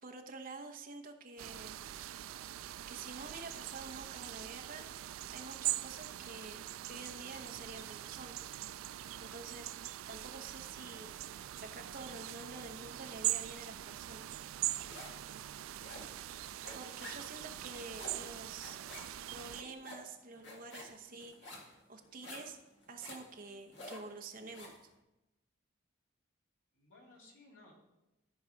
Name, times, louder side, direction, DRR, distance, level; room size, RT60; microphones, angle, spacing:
voice 1, 0.0-1.8 2.9-8.4 9.2-9.7 10.0-14.3 16.7-18.8 19.3-22.6 22.9-24.7, right 3 dB, 45° right, 4 dB, 0.9 m, -48 dB
sound 1, 1.4-19.6, right 14 dB, 85° right, 0.3 m, -42 dB
sound 2, 14.4-15.3 15.5-24.8, left 1 dB, 60° left, 1.8 m, -51 dB
voice 2, 26.7-27.7, left 2 dB, 80° left, -4 dB, 3.1 m, -61 dB
13.5 x 4.7 x 5.2 m, 0.97 s
head